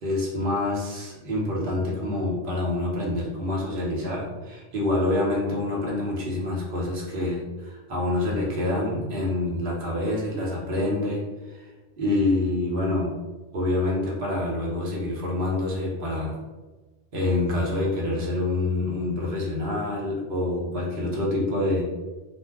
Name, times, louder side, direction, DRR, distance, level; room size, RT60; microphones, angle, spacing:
voice 1, 0.0-11.2 11.5-11.7 12.0-13.1 13.5-16.4 17.1-21.8, left 2 dB, 55° right, -4 dB, 0.9 m, -26 dB
2.6 x 2.0 x 3.3 m, 1.2 s
omnidirectional pair, 1.2 m